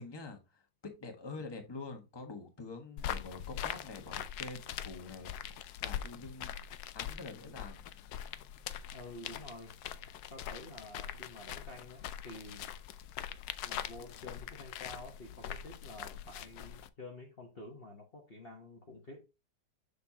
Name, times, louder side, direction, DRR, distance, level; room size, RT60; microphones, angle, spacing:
voice 1, 0.0-6.6 6.9-7.8, left 3 dB, 15° left, 1.2 m, -46 dB
sound 1, 3.0-16.9, left 10 dB, 75° left, 1.1 m, -42 dB
voice 2, 8.9-9.8 10.3-12.7 13.6-19.2, left 2 dB, 40° left, 1.2 m, -49 dB
6.8 x 6.5 x 2.8 m
omnidirectional pair, 1.8 m